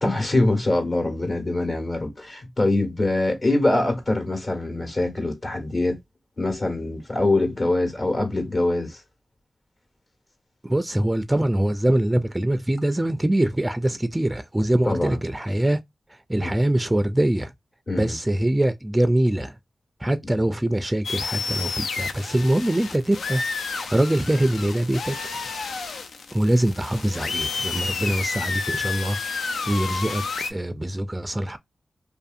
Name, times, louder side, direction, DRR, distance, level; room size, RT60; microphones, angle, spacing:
voice 1, 0.0-6.0 6.4-9.0 14.8-15.2 16.4-16.5 17.9-18.2, left 2 dB, 45° left, 1.3 m, -23 dB
voice 2, 10.6-15.8 16.3-17.5 18.0-19.5 20.0-25.2 26.3-29.2 29.7-30.2 30.5-31.6, right 1 dB, 15° right, 0.4 m, -23 dB
sound 1, 21.0-30.5, left 4 dB, 90° left, 0.4 m, -30 dB
2.6 x 2.5 x 2.4 m
cardioid pair, 50°, 0 cm